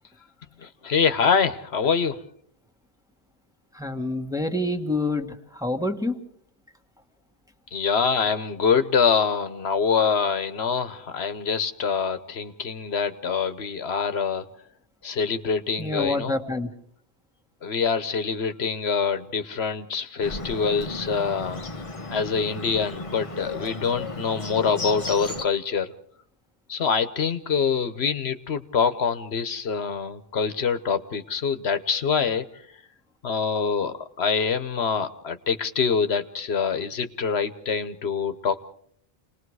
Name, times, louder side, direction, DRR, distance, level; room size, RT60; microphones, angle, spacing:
voice 1, 0.6-2.2 7.7-14.4 15.0-16.3 17.6-21.6 22.1-25.9 26.7-32.4 33.2-38.6, left 6 dB, 90° left, 11 dB, 1.3 m, -25 dB
voice 2, 3.7-6.1 15.8-16.7, left 2 dB, 5° right, 3 dB, 1.6 m, -27 dB
Bird, 20.2-25.4, left 2 dB, 35° left, 1.1 m, -34 dB
28.5 x 20.0 x 4.8 m, 0.63 s
omnidirectional pair, 1.0 m